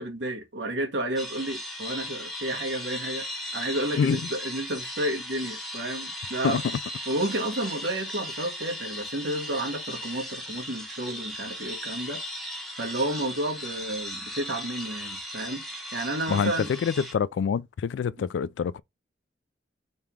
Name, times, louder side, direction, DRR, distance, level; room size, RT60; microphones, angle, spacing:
voice 1, 0.0-3.3 3.5-6.6 7.1-12.2 12.8-15.6 15.9-16.7 18.2-18.3, right 1 dB, 75° right, 1.1 m, -31 dB
sound 1, 1.2-17.1, left 1 dB, ahead, 0.9 m, -37 dB
voice 2, 16.8-18.8, left 6 dB, 80° left, 0.3 m, -26 dB
3.3 x 2.9 x 3.4 m
head